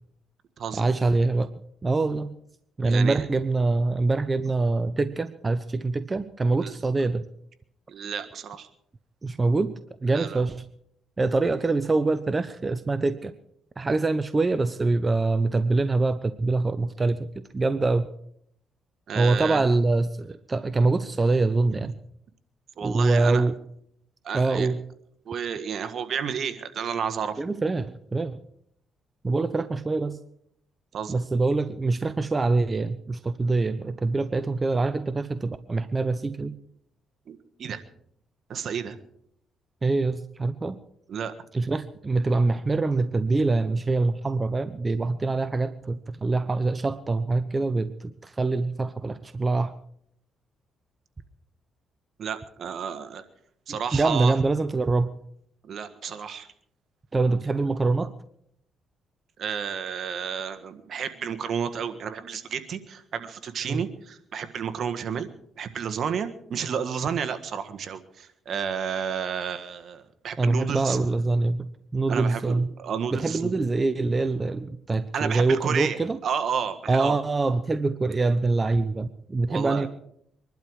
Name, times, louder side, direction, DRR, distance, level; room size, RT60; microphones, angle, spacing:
voice 1, 0.7-1.5 1.8-2.3 2.8-7.2 9.2-9.7 10.0-10.6 11.2-13.3 13.8-18.1 19.1-22.0 22.8-23.5 24.3-24.8 27.4-28.4 29.2-30.2 31.1-36.5 39.8-40.8 41.5-49.7 53.7-55.1 57.1-58.1 63.7-63.8 70.4-71.7 71.9-72.7 73.1-76.2 76.9-79.9, right 3 dB, 25° right, 11 dB, 0.8 m, -24 dB
voice 2, 2.8-3.2 6.6-6.7 7.9-8.7 10.1-10.4 19.1-19.6 21.8-21.9 22.8-23.4 24.2-24.7 25.2-27.4 30.9-31.2 37.3-37.8 38.5-39.0 41.1-41.3 52.2-53.2 53.7-54.3 55.7-56.5 59.4-65.3 65.6-71.0 72.1-73.5 75.1-77.2 79.5-79.9, right 7 dB, 60° right, 9 dB, 1.5 m, -31 dB
23.0 x 12.0 x 4.8 m, 0.70 s
cardioid pair, 90°, 0 cm